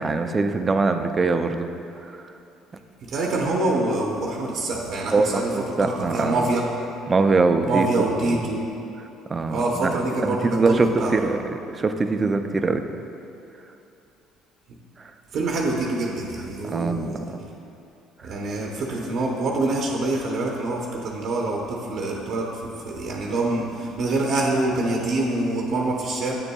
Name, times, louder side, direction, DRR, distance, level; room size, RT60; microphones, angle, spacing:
voice 1, 0.0-1.7 2.0-2.2 5.1-6.5 7.1-8.4 9.3-12.8 15.0-15.1 16.6-17.4 18.2-18.3, right 3 dB, 30° right, 8 dB, 0.4 m, -23 dB
voice 2, 3.0-6.7 7.7-8.6 9.5-11.1 15.3-17.2 18.2-26.3, right 2 dB, 60° right, -1 dB, 0.7 m, -25 dB
8.8 x 6.9 x 2.3 m, 2.7 s
supercardioid pair, 95°, 0 cm